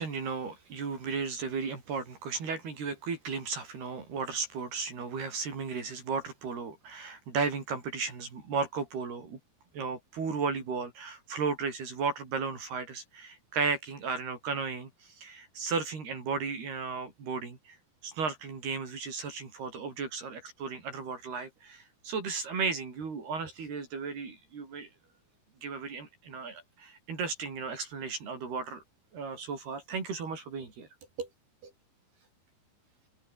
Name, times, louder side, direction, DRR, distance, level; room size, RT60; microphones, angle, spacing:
voice 1, 0.0-9.4 9.7-14.9 15.2-17.8 18.0-24.9 25.6-28.8 29.1-30.9 31.2-31.3, right 5 dB, 75° right, 7.6 m, -35 dB
omnidirectional pair, 4.7 m